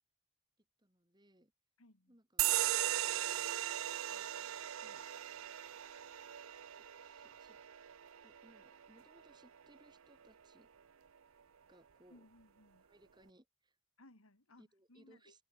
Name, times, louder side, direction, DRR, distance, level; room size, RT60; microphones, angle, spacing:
voice 1, 0.6-1.5 2.1-2.5 3.3-3.5 4.1-5.1 6.7-7.6 8.2-10.7 11.7-12.3 12.9-13.8 14.6-15.4, right 1 dB, 20° right, 4.3 m, -66 dB
voice 2, 1.8-2.2 12.1-12.8 14.0-15.4, left 1 dB, 75° left, 3.0 m, -63 dB
sound 1, 2.4-9.4, right 13 dB, 70° right, 0.6 m, -38 dB
head